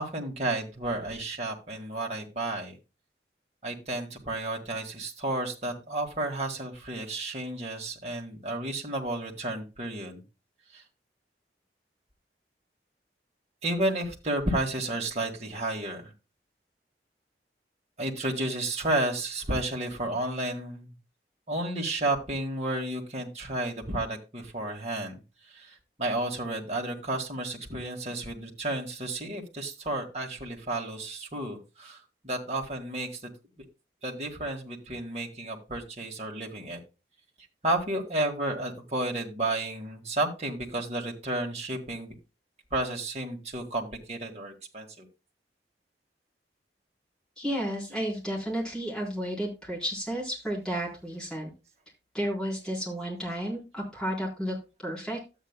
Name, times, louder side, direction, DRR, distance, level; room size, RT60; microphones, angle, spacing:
voice 1, 0.0-2.8 3.6-10.2 10.7-10.8 13.6-16.1 18.0-20.9 21.5-25.2 25.5-32.0 32.2-33.3 34.0-36.8 37.6-42.1 42.7-45.1, right 2 dB, 40° right, 0 dB, 1.9 m, -32 dB
voice 2, 47.4-51.5 52.1-55.2, equal, 5° left, -4 dB, 3.9 m, -32 dB
13.0 x 8.4 x 2.2 m, 0.28 s
head